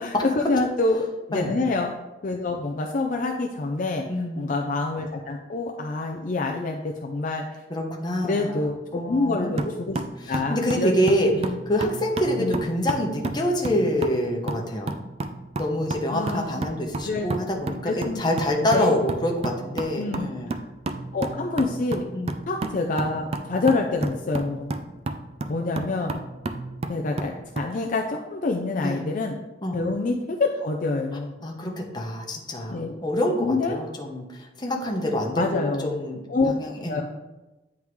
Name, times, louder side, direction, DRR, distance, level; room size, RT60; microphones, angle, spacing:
voice 1, 0.0-1.9 2.2-4.0 4.4-7.6 8.2-10.0 10.3-10.9 11.3-11.5 12.4-12.7 16.1-16.6 17.0-17.3 17.8-18.2 18.6-19.0 20.0-20.3 21.1-22.1 22.5-24.8 25.5-26.2 26.9-29.4 29.7-31.3 32.7-32.9 33.4-33.8 35.4-35.9 36.3-36.5 36.9-37.0, left 3 dB, 50° left, 2 dB, 0.4 m, -26 dB
voice 2, 4.1-4.5 7.7-8.6 8.9-14.9 15.6-20.5 22.1-22.3 28.8-29.0 29.6-29.8 31.4-36.2 36.5-37.0, equal, 25° left, 1 dB, 0.9 m, -26 dB
sound 1, 9.6-27.7, right 2 dB, 35° right, 0.4 m, -33 dB
9.3 x 3.6 x 3.1 m, 1.1 s
head